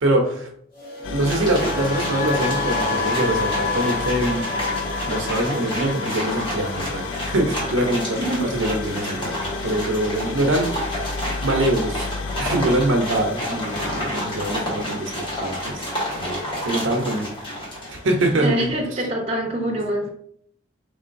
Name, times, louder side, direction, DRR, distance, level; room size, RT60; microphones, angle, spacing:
voice 1, 0.0-0.5 1.1-4.6 5.0-10.9 11.4-12.1 12.4-15.9 16.2-17.3 18.0-18.7, right 1 dB, 70° right, 2 dB, 0.8 m, -24 dB
sound 1, 0.7-8.8 9.1-9.5, left 4 dB, 45° left, 1.3 m, -29 dB
sound 2, 1.0-18.8, left 4 dB, 65° left, 0.3 m, -34 dB
sound 3, 1.2-18.4, equal, 25° left, 1.2 m, -30 dB
voice 2, 18.4-20.1, right 1 dB, 30° right, -1 dB, 0.7 m, -24 dB
3.8 x 3.6 x 2.6 m, 0.66 s
head